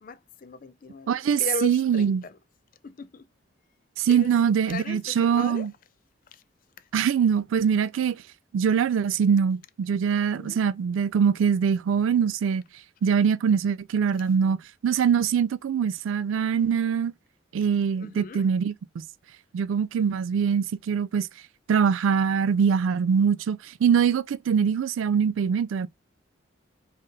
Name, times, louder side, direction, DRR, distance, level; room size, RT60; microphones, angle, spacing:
voice 1, 0.0-2.4 2.8-3.2 4.1-4.3 4.7-5.7 6.3-6.4 10.3-10.6 18.0-18.4, left 3 dB, 40° left, 0.4 m, -37 dB
voice 2, 1.1-2.2 4.0-5.7 6.9-8.2 8.5-12.6 13.0-17.1 17.5-18.7 19.5-21.3 21.7-25.9, right 7 dB, 80° right, 0.3 m, -23 dB
4.1 x 2.6 x 3.7 m
head